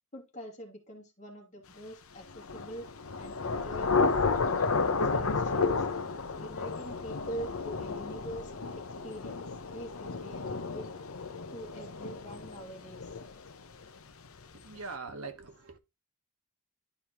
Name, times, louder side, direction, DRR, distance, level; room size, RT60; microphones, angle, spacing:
voice 1, 0.1-2.9 3.2-5.9 6.4-10.9 11.5-13.1, right 1 dB, 35° left, 2.5 m, -44 dB
Thunder / Rain, 2.3-13.9, left 4 dB, 75° left, 0.8 m, -32 dB
voice 2, 14.5-15.8, right 4 dB, 85° right, 1.5 m, -42 dB
11.5 x 4.9 x 3.0 m
head